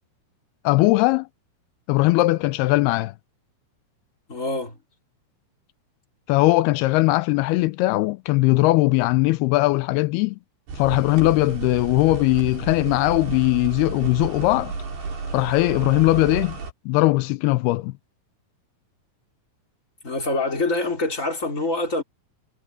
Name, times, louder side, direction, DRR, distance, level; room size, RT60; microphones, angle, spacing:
voice 1, 0.6-1.3 1.9-3.1 6.3-10.4 10.8-14.7 15.3-16.6 16.9-17.9, left 20 dB, 85° left, 2.6 m, -20 dB
voice 2, 4.3-4.8 20.0-22.0, left 2 dB, 20° left, 4.6 m, -25 dB
sound 1, 10.7-16.7, right 4 dB, 90° right, 8.2 m, -32 dB
omnidirectional pair, 4.4 m